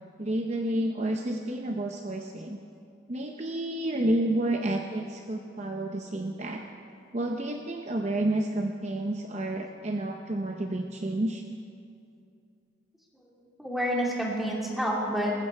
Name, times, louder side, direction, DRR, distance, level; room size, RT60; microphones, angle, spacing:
voice 1, 0.2-2.6 3.1-6.6 7.1-11.4, right 1 dB, 35° right, 3 dB, 0.7 m, -30 dB
voice 2, 4.5-5.0 13.1-15.3, equal, ahead, -3 dB, 2.6 m, -30 dB
19.5 x 15.0 x 4.6 m, 2.5 s
head